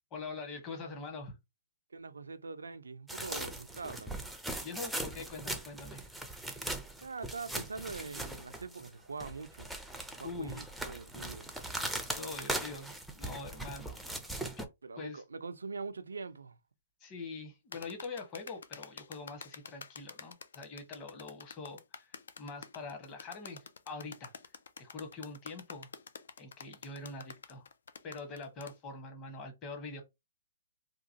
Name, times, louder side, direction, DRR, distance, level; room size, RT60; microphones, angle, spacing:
voice 1, 0.1-1.4 4.6-6.1 10.2-10.7 12.1-14.7 15.0-15.2 17.0-24.3 24.8-25.9 26.4-27.7 28.0-30.0, left 3 dB, 30° left, 1.0 m, -44 dB
voice 2, 1.9-4.2 7.0-9.7 10.2-11.5 14.8-16.6, right 4 dB, 85° right, 0.4 m, -43 dB
sound 1, 3.1-8.9 9.2-14.7, right 1 dB, ahead, 0.5 m, -40 dB
sound 2, 17.7-28.8, left 6 dB, 70° left, 0.4 m, -48 dB
2.9 x 2.3 x 2.7 m
hypercardioid pair, 130°, 0 cm